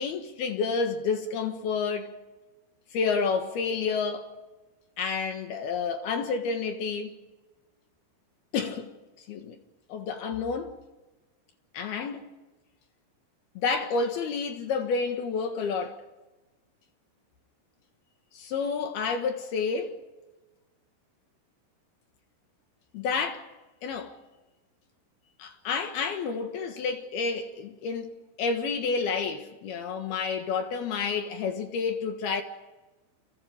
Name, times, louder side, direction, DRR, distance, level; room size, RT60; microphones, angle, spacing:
voice 1, 0.0-2.1 2.9-4.3 5.0-7.1 8.5-8.9 9.3-9.6 9.9-10.7 11.7-12.2 13.6-16.0 18.3-20.0 22.9-23.5 23.8-24.1 25.4-28.1 28.4-32.4, left 5 dB, 65° left, 3.0 m, -29 dB
30.0 x 25.5 x 5.1 m
omnidirectional pair, 5.6 m